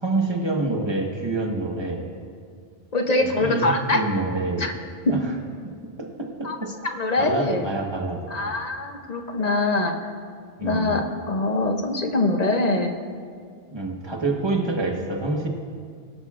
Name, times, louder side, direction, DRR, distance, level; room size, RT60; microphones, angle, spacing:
voice 1, 0.0-2.0 3.3-4.7 5.1-5.3 6.0-6.7 7.2-8.5 10.6-11.1 13.7-15.5, right 2 dB, 25° right, 1 dB, 1.2 m, -27 dB
voice 2, 2.9-4.0 4.6-4.7 5.1-5.2 6.4-6.6 6.8-7.7 8.3-10.1 10.6-12.9, left 2 dB, 45° left, 5 dB, 0.7 m, -23 dB
18.0 x 11.5 x 2.4 m, 2.1 s
omnidirectional pair, 1.1 m